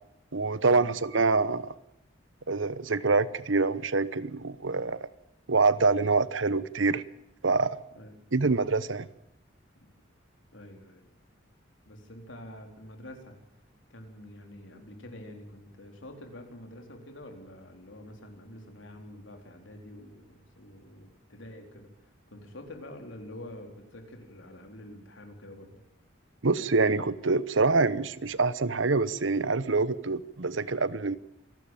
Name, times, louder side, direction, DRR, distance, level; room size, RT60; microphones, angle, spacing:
voice 1, 0.3-1.7 2.5-5.1 5.5-7.0 7.4-7.8 8.3-9.1 26.4-31.2, right 3 dB, 80° right, 16 dB, 1.0 m, -25 dB
voice 2, 10.5-11.1 11.9-13.4 13.9-25.8, left 1 dB, 80° left, 4 dB, 3.9 m, -47 dB
27.5 x 12.5 x 9.1 m, 0.85 s
head